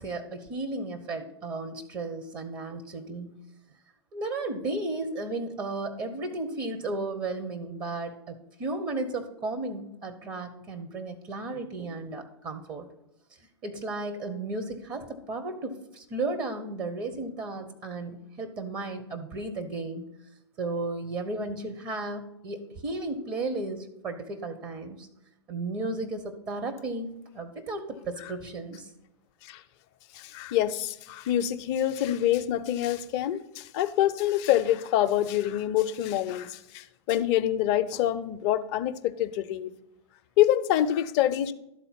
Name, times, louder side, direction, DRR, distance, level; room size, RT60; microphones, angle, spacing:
voice 1, 0.0-3.4 4.1-12.9 13.6-20.1 20.6-25.1 25.5-28.9, right 2 dB, 30° right, 0.9 m, -34 dB
voice 2, 30.1-39.7 40.4-41.5, left 12 dB, 40° left, 0.6 m, -26 dB
12.0 x 4.0 x 5.8 m
figure-of-eight pair, 100°, 14 cm